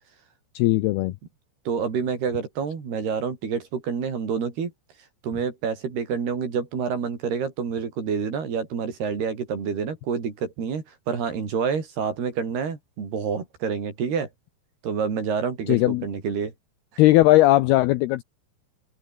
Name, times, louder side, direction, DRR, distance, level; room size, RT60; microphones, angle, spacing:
voice 1, 0.6-1.1 15.7-16.0 17.0-18.2, left 17 dB, 80° left, 2.3 m, -18 dB
voice 2, 1.7-4.7 5.2-14.3 14.8-16.5, right 6 dB, 60° right, 6.3 m, -28 dB
open air
omnidirectional pair, 5.3 m